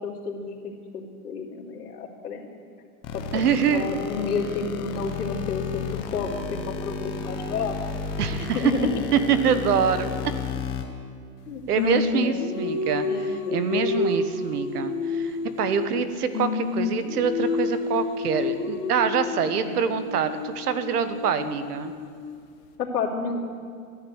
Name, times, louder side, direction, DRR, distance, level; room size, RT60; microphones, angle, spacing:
voice 1, 0.0-2.5 3.1-3.4 3.7-7.8 8.4-8.9 11.5-12.5 13.0-13.9 19.5-19.6 22.8-23.5, left 4 dB, 85° left, -10 dB, 3.0 m, -31 dB
sound 1, 3.0-10.8, left 6 dB, 10° left, 0.5 m, -33 dB
voice 2, 3.3-3.9 8.2-8.7 9.1-10.1 11.7-21.9, right 7 dB, 80° right, 11 dB, 1.4 m, -25 dB
Singing, 11.7-16.1 16.3-22.3, left 4 dB, 35° left, 1.6 m, -29 dB
13.5 x 11.0 x 8.0 m, 2.3 s
hypercardioid pair, 155°, 46 cm